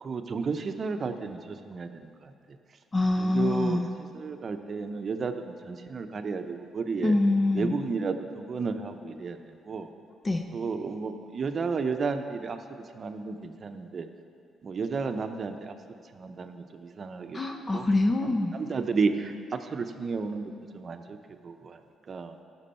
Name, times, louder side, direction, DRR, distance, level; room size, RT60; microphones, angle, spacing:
voice 1, 0.0-2.3 3.2-3.8 4.1-7.1 7.5-9.9 10.5-12.6 12.9-14.1 14.6-15.7 16.2-17.8 18.5-21.0 21.4-21.8 22.1-22.3, right 4 dB, 45° right, 7 dB, 0.7 m, -32 dB
voice 2, 2.9-3.9 7.0-7.8 10.2-10.5 17.3-18.6, left 2 dB, 30° left, 4 dB, 0.6 m, -25 dB
14.5 x 6.1 x 4.3 m, 2.4 s
cardioid pair, 90°, 0 cm